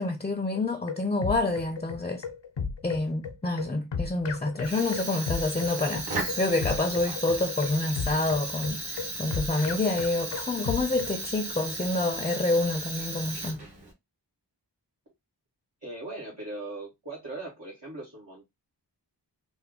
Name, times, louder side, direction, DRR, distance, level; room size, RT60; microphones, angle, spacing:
voice 1, 0.0-2.2 2.8-13.6, left 2 dB, 15° left, 0.4 m, -28 dB
sound 1, 0.5-11.2, left 5 dB, 75° left, 0.6 m, -34 dB
Fire, 4.6-13.9, right 2 dB, 65° right, 1.3 m, -35 dB
voice 2, 15.8-18.4, right 2 dB, 85° right, 1.6 m, -39 dB
3.4 x 2.1 x 3.6 m
wide cardioid pair, 45°, 43 cm